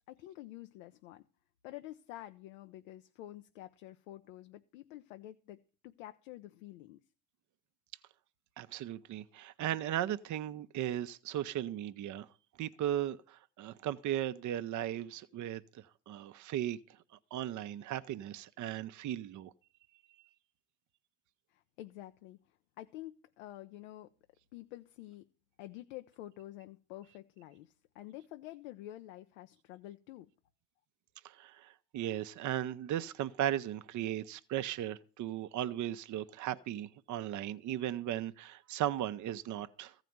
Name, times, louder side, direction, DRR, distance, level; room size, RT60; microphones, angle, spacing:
voice 1, 0.1-1.2 1.6-7.0 21.5-22.4 22.8-24.1 24.5-25.3 25.6-30.3, left 15 dB, 90° left, 0.7 m, -49 dB
voice 2, 8.6-12.3 12.6-16.8 17.1-19.5 31.2-39.9, right 12 dB, 55° right, 0.8 m, -37 dB
14.5 x 5.0 x 9.4 m
supercardioid pair, 80°, 36 cm